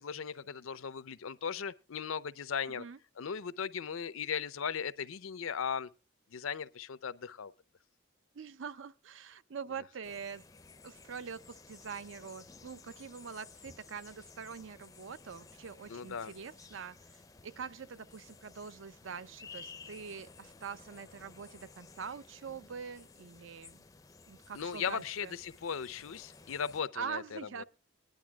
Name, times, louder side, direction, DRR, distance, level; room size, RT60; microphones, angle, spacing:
voice 1, 0.0-2.8 3.2-5.9 6.3-7.5 15.9-16.3 24.5-27.6, left 7 dB, 85° left, 0.6 m, -37 dB
voice 2, 8.3-10.4 10.8-23.8 24.3-25.3 26.9-27.6, right 6 dB, 70° right, 0.5 m, -44 dB
sound 1, 10.0-26.8, left 4 dB, 15° left, 0.5 m, -55 dB
20.5 x 10.5 x 2.3 m
head